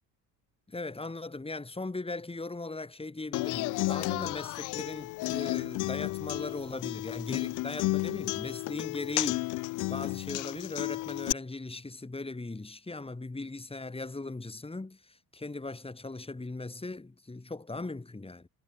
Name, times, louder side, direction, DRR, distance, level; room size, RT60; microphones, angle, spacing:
voice 1, 0.7-18.5, left 3 dB, 10° left, 2.2 m, -39 dB
Human voice / Acoustic guitar, 3.3-11.3, left 21 dB, 45° left, 0.4 m, -32 dB
figure-of-eight pair, 55°, 50 cm